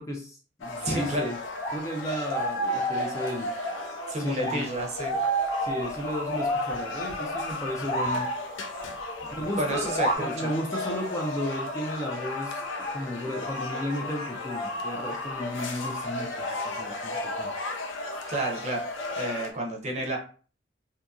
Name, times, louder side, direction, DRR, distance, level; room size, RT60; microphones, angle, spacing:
voice 1, 0.0-1.4 1.7-3.5 4.2-4.7 5.6-8.3 9.3-17.5, equal, 15° left, 1 dB, 0.3 m, -34 dB
sound 1, 0.6-19.5, left 2 dB, 85° left, 0.4 m, -35 dB
voice 2, 0.8-1.3 4.1-5.2 9.6-10.5 18.3-18.8 19.2-20.2, right 1 dB, 35° right, 1 dB, 0.6 m, -30 dB
sound 2, 1.0-1.1 1.5-3.9 4.4-8.7 9.8-10.2, right 1 dB, 50° left, 0.7 m, -30 dB
2.7 x 2.6 x 2.3 m, 0.39 s
head